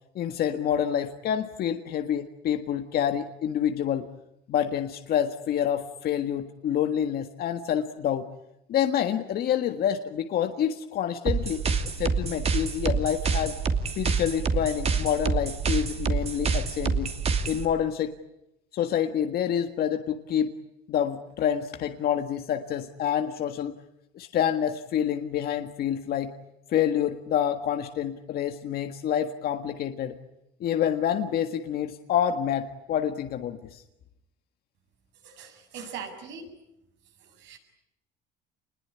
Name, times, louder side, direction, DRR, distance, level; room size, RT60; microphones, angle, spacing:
voice 1, 0.1-4.1 4.5-8.3 8.7-11.7 12.0-13.6 14.0-17.1 17.4-18.1 18.7-20.5 20.9-23.7 24.1-26.3 26.7-30.2 30.6-33.8, left 9 dB, 50° left, 7 dB, 1.7 m, -27 dB
sound 1, 11.3-17.6, right 5 dB, 30° right, 2.6 m, -27 dB
voice 2, 35.2-36.5 37.2-37.6, right 6 dB, 70° right, 4 dB, 7.7 m, -41 dB
28.0 x 21.0 x 9.8 m, 0.86 s
cardioid pair, 135°, 20 cm